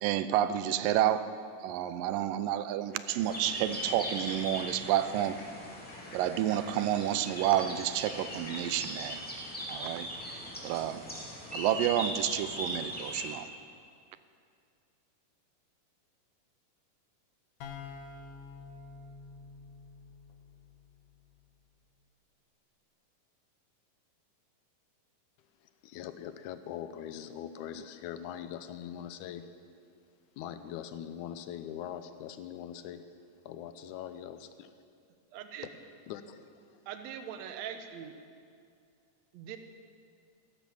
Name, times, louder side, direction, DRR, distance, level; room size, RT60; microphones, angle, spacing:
voice 1, 0.0-1.3 1.6-5.4 6.1-9.2 9.7-10.1 10.6-11.0 11.5-13.5, right 12 dB, 90° right, 13 dB, 2.3 m, -30 dB
sound 1, 2.9-8.7, left 1 dB, 40° left, 3.1 m, -51 dB
sound 2, 3.2-13.3, equal, 5° left, 2.1 m, -40 dB
sound 3, 17.6-21.3, left 5 dB, 60° left, 2.3 m, -48 dB
voice 2, 25.6-29.5 30.4-33.1 33.5-34.7 36.1-36.8, left 10 dB, 75° left, 11 dB, 2.0 m, -42 dB
voice 3, 35.3-35.7 36.9-38.1 39.3-39.6, right 9 dB, 65° right, 7 dB, 2.0 m, -41 dB
15.5 x 12.5 x 7.1 m, 2.3 s
omnidirectional pair, 3.8 m